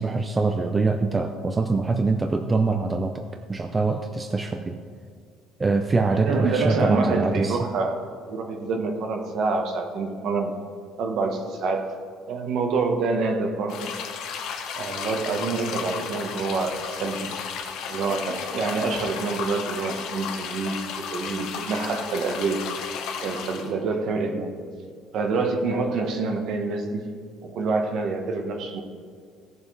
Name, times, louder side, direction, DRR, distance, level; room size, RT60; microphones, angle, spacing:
voice 1, 0.0-3.2 3.5-4.8 5.6-7.6, right 3 dB, 15° right, 6 dB, 0.4 m, -24 dB
voice 2, 6.2-8.0 8.3-10.6 11.0-11.9 12.3-13.9 14.8-17.3 17.9-22.7 23.2-24.6 25.1-27.1 27.4-28.8, right 3 dB, 50° right, 5 dB, 1.1 m, -27 dB
sound 1, 13.7-23.7, left 6 dB, 65° left, 1.1 m, -34 dB
16.0 x 7.2 x 3.2 m, 2.1 s
cardioid pair, 165°, 0 cm